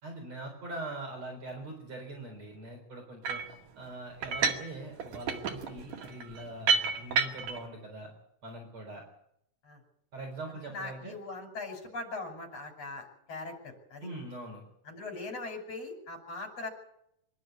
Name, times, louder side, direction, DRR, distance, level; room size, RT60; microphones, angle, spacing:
voice 1, 0.0-3.4 3.8-8.1 8.4-9.0 10.1-11.1 14.0-14.6, right 2 dB, 55° right, 1 dB, 5.3 m, -42 dB
sound 1, 3.2-3.5 4.2-4.7 5.0-7.6, right 5 dB, 75° right, 3.8 m, -30 dB
voice 2, 10.6-14.1 14.9-16.7, left 3 dB, 50° left, 2 dB, 6.9 m, -40 dB
26.0 x 12.0 x 9.8 m, 0.75 s
omnidirectional pair, 3.7 m